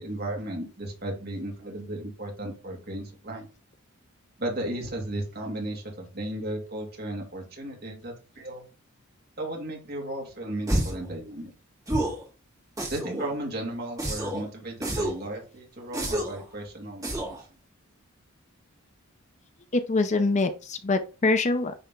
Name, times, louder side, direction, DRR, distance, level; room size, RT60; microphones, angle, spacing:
voice 1, 0.0-3.5 4.4-8.6 9.4-11.5 12.9-17.4, right 1 dB, 45° right, 0 dB, 2.3 m, -35 dB
sound 1, 10.7-11.1 11.9-12.2 12.8-13.3 14.0-14.4 14.8-15.2 15.9-16.4 17.0-17.4, right 1 dB, 15° right, 1.8 m, -29 dB
voice 2, 19.7-21.7, left 3 dB, 30° left, 9 dB, 0.5 m, -24 dB
10.0 x 3.3 x 3.8 m, 0.34 s
head